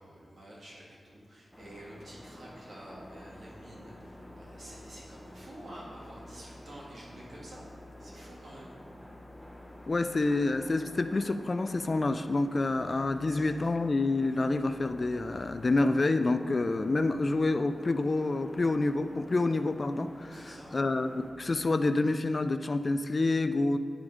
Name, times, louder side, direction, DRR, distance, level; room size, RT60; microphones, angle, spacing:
voice 1, 0.0-7.7 8.0-8.7 13.3-13.4 20.3-20.8, right 1 dB, 65° right, -6 dB, 2.1 m, -49 dB
sound 1, 1.5-21.3, left 1 dB, 10° left, 1.0 m, -49 dB
voice 2, 9.9-23.8, left 2 dB, 45° left, 10 dB, 0.3 m, -28 dB
10.0 x 3.6 x 4.9 m, 2.1 s
wide cardioid pair, 75°, 0 cm